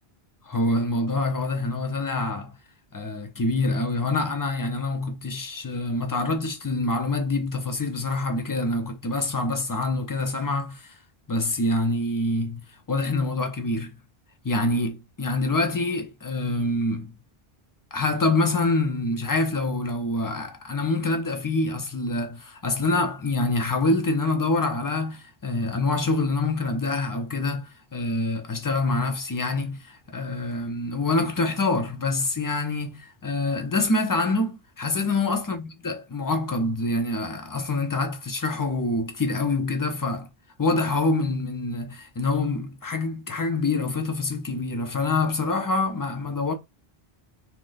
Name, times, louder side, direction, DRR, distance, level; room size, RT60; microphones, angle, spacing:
voice 1, 0.5-2.5 2.9-10.9 11.3-14.0 14.4-17.2 17.9-40.3 40.6-46.5, left 2 dB, 25° left, 0.5 m, -26 dB
3.2 x 2.2 x 3.9 m
omnidirectional pair, 1.0 m